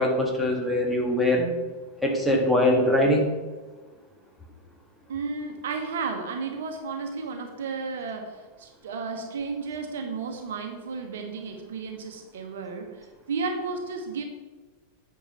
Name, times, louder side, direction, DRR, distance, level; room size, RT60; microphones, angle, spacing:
voice 1, 0.0-1.5 2.0-3.3, left 1 dB, 5° left, 0 dB, 2.0 m, -22 dB
voice 2, 5.1-14.2, right 4 dB, 60° right, 4 dB, 1.2 m, -33 dB
9.1 x 5.9 x 5.9 m, 1.3 s
figure-of-eight pair, 90°, 0 cm